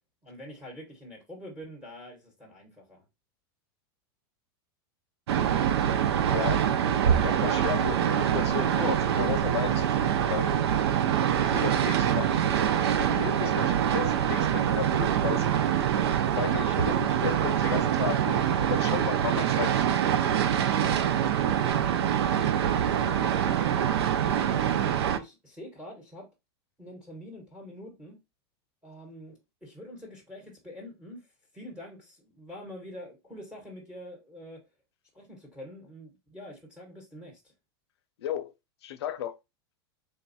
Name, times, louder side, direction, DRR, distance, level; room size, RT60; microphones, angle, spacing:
voice 1, 0.2-3.0 21.5-21.6 23.2-23.5 25.1-26.2 26.8-28.2 28.8-31.3 31.5-34.6 35.1-37.4, equal, 5° right, 1.2 m, -45 dB
voice 2, 5.3-5.6 6.3-6.7 7.1-10.6 11.5-12.5 12.8-15.5 16.3-20.0 38.2-38.5 38.8-39.3, left 9 dB, 90° left, 0.6 m, -35 dB
sound 1, 5.3-25.2, right 9 dB, 85° right, 0.5 m, -25 dB
3.5 x 2.3 x 4.1 m
supercardioid pair, 150°, 13 cm